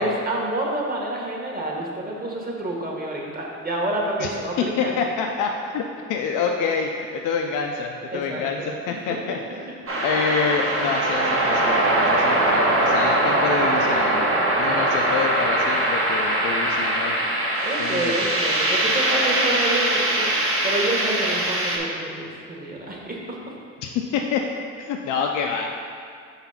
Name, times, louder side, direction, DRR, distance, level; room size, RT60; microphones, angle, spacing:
voice 1, 0.0-5.0 8.1-9.3 17.6-23.4, right 1 dB, 30° right, -2 dB, 1.5 m, -28 dB
voice 2, 4.6-5.8 6.1-9.4 10.0-11.8 12.1-14.3 14.6-17.2 17.8-18.1 23.8-24.4 24.8-25.7, left 6 dB, 85° left, 1 dB, 0.5 m, -26 dB
sound 1, 9.9-21.8, right 1 dB, 45° right, 1.2 m, -22 dB
5.8 x 4.0 x 5.7 m, 2.2 s
cardioid pair, 90°, 30 cm